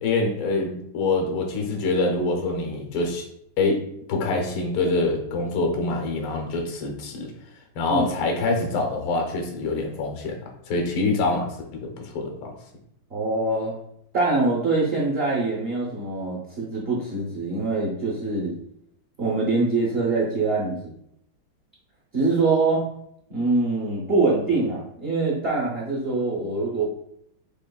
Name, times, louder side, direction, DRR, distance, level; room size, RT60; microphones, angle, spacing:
voice 1, 0.0-3.2 3.6-3.8 4.1-7.3 7.8-10.4 10.7-12.5, left 3 dB, 85° left, 2 dB, 1.7 m, -25 dB
voice 2, 13.1-13.8 14.1-18.5 19.2-20.9 22.1-22.8 23.3-26.8, right 3 dB, 50° right, -4 dB, 0.7 m, -24 dB
6.3 x 3.0 x 2.3 m, 0.73 s
omnidirectional pair, 2.3 m